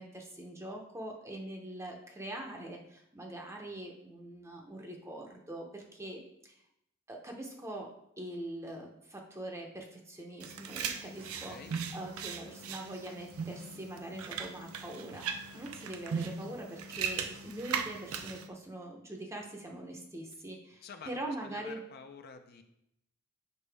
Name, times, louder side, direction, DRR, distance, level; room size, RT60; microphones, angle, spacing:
voice 1, 0.0-6.6 7.1-7.9 8.2-11.6 11.9-21.8, right 1 dB, 15° right, 1 dB, 0.7 m, -43 dB
sound 1, 10.4-18.5, right 6 dB, 75° right, 0.5 m, -39 dB
voice 2, 11.2-11.8 20.4-20.5 20.8-22.6, left 5 dB, 45° left, 6 dB, 0.5 m, -50 dB
6.7 x 5.2 x 3.4 m, 0.79 s
head